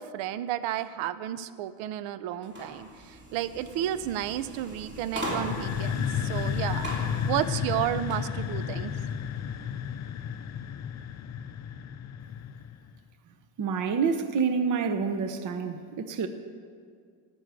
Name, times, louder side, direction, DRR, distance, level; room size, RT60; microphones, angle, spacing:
voice 1, 0.0-6.9 7.3-8.9, right 12 dB, 70° right, 14 dB, 0.6 m, -32 dB
sound 1, 2.4-8.3, equal, 20° right, 2.9 m, -39 dB
sound 2, 5.2-12.9, left 8 dB, 35° left, 0.5 m, -32 dB
voice 2, 13.6-16.3, right 5 dB, 40° right, 9 dB, 0.8 m, -28 dB
13.5 x 6.3 x 8.2 m, 2.1 s
cardioid pair, 115°, 49 cm